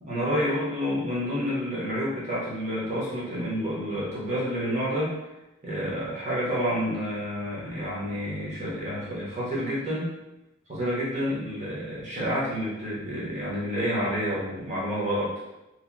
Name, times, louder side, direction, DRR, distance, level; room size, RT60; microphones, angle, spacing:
voice 1, 0.0-5.2 5.6-10.1 10.7-15.3, equal, 35° right, -7 dB, 0.9 m, -29 dB
2.8 x 2.6 x 2.6 m, 0.97 s
head